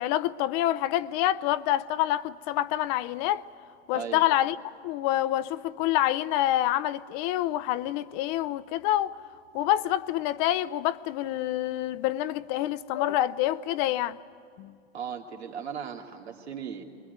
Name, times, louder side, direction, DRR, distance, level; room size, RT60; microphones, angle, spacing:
voice 1, 0.0-3.4 3.9-9.2 9.5-14.2 14.6-14.7, left 13 dB, 45° left, 0.6 m, -27 dB
voice 2, 3.9-4.3 14.9-16.8, right 7 dB, 90° right, 2.6 m, -37 dB
21.5 x 21.0 x 9.4 m
hypercardioid pair, 120°, 32 cm